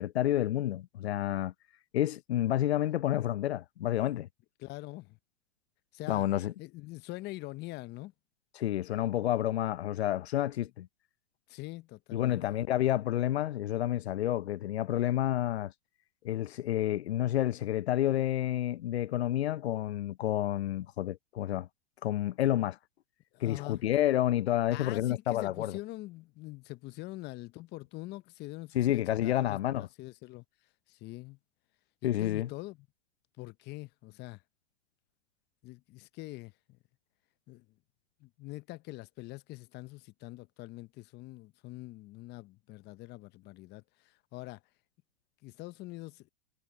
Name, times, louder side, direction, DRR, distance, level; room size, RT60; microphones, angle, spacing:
voice 1, 0.0-1.5 1.9-4.3 6.1-6.5 8.6-10.9 12.1-15.7 16.2-21.7 22.0-22.8 23.4-25.8 28.7-29.9 32.0-32.5, left 13 dB, 85° left, 0.6 m, -29 dB
voice 2, 4.6-5.2 5.9-6.3 6.6-8.1 11.5-12.6 23.3-23.9 24.7-28.8 29.2-30.4 30.9-31.4 32.0-32.8 33.4-34.4 35.6-36.8 37.5-37.6 38.2-44.6 45.4-46.3, left 19 dB, 35° left, 0.8 m, -44 dB
hypercardioid pair, 115°, 31 cm